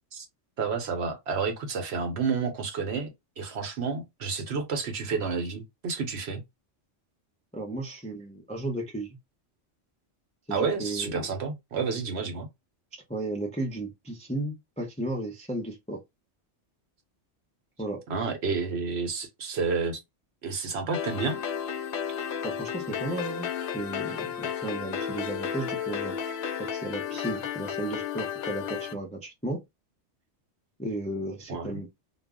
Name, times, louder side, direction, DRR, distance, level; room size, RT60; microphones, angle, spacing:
voice 1, 0.6-3.1 3.4-6.4 10.5-12.5 18.1-20.0 20.4-21.4 31.5-31.8, right 5 dB, 65° right, 0.9 m, -30 dB
voice 2, 7.5-9.2 10.5-11.2 13.1-16.0 17.8-18.0 22.4-23.5 23.7-26.2 26.6-29.6 30.8-31.9, right 1 dB, 10° left, 0.4 m, -34 dB
sound 1, 20.9-28.9, left 8 dB, 60° left, 0.7 m, -33 dB
2.3 x 2.0 x 3.5 m
omnidirectional pair, 1.2 m